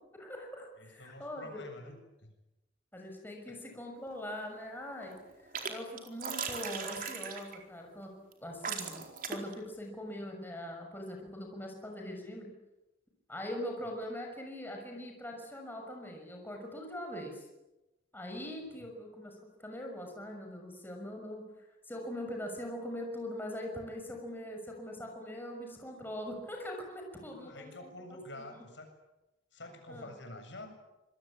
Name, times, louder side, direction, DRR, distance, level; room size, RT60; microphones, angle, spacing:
voice 1, 0.1-1.9 2.9-5.1 5.4-8.1 8.4-9.0 9.3-12.5 13.3-17.4 18.1-27.9 28.4-28.6 29.9-30.1, left 1 dB, 10° left, 1 dB, 6.3 m, -42 dB
voice 2, 0.8-2.3 3.5-3.6 27.4-28.9 29.5-30.7, left 1 dB, 70° left, 5 dB, 7.5 m, -48 dB
sound 1, 4.1-4.6 4.9-5.7 6.0-7.6 8.3-8.4 8.6-9.5, right 6 dB, 50° right, 4.3 m, -38 dB
27.0 x 23.5 x 8.9 m, 1.0 s
head